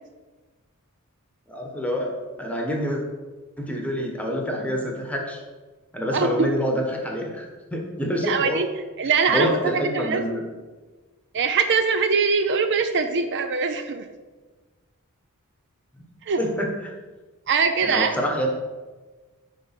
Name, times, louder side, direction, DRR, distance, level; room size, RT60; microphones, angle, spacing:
voice 1, 1.5-3.0 3.6-5.4 5.9-8.6 9.3-10.5 16.0-16.1 16.4-16.9 17.8-18.5, equal, 5° left, 1 dB, 1.3 m, -27 dB
voice 2, 6.1-6.5 8.2-8.7 9.0-9.5 9.9-10.2 11.3-14.0 16.3-16.4 17.5-18.1, right 5 dB, 55° right, 8 dB, 0.5 m, -22 dB
9.9 x 3.5 x 5.8 m, 1.3 s
head